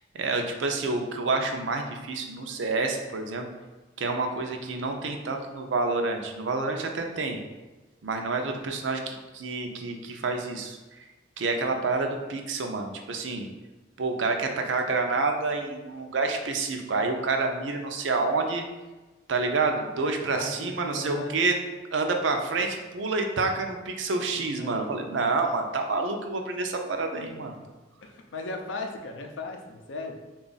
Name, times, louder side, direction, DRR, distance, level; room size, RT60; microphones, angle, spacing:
voice 1, 0.1-3.5 4.0-7.4 8.0-10.8 11.4-13.5 14.0-18.6 19.3-21.5 21.9-27.5, right 3 dB, 80° right, 4 dB, 0.5 m, -28 dB
voice 2, 20.3-21.3 24.6-24.9 27.3-27.4 28.0-30.2, left 2 dB, 80° left, 3 dB, 0.5 m, -37 dB
3.7 x 2.4 x 3.9 m, 1.2 s
head